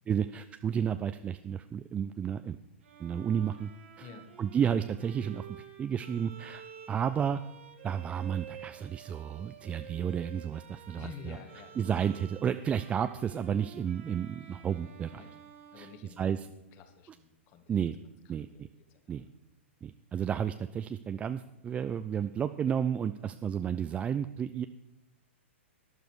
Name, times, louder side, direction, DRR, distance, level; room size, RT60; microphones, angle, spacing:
voice 1, 0.1-2.6 3.0-3.7 4.0-4.1 4.4-7.4 7.8-11.4 11.8-15.2 15.8-15.9 16.2-16.5 17.7-18.0 18.3-18.7 19.1-19.2 19.8-24.7, right 8 dB, 20° right, 10 dB, 0.4 m, -32 dB
Bowed string instrument, 2.8-16.7, right 8 dB, 65° right, 1.7 m, -51 dB
voice 2, 10.9-11.9 15.1-15.4 15.7-17.8 18.0-19.3, left 6 dB, 40° left, 7 dB, 1.6 m, -51 dB
12.0 x 11.0 x 4.7 m, 0.94 s
hypercardioid pair, 120°, 7 cm